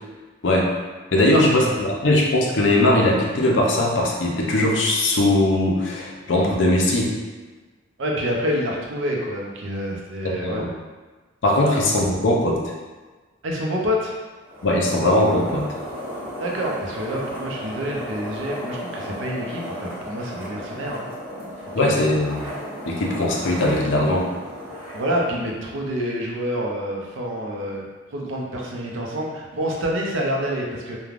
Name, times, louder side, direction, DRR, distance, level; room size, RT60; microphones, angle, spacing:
voice 1, 0.4-0.7 1.1-7.1 10.4-10.7 11.4-12.7 14.6-15.7 21.7-22.5 22.9-24.3, left 1 dB, 65° left, -1 dB, 0.5 m, -20 dB
voice 2, 1.3-1.8 8.0-10.6 11.6-11.8 13.4-14.1 16.4-21.0 21.8-22.0 24.9-27.8 28.1-31.0, equal, 75° right, -2 dB, 0.6 m, -27 dB
sound 1, 14.4-26.0, equal, 10° right, 0.9 m, -35 dB
3.2 x 2.2 x 2.4 m, 1.3 s
head